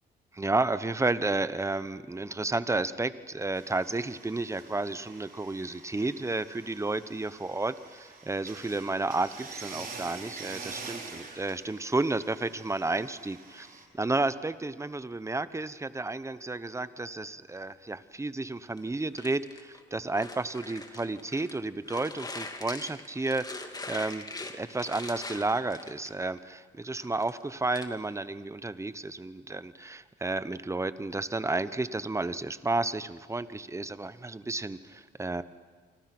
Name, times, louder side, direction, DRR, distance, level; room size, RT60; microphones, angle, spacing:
voice 1, 0.3-24.2 24.5-35.4, right 2 dB, 15° right, 14 dB, 1.1 m, -32 dB
sound 1, 3.5-13.8, right 4 dB, 45° right, 4.5 m, -46 dB
sound 2, 18.8-21.6 21.9-26.4 26.8-27.9, left 2 dB, 20° left, 2.3 m, -42 dB
29.5 x 25.0 x 6.2 m, 1.5 s
cardioid pair, 90°, 20 cm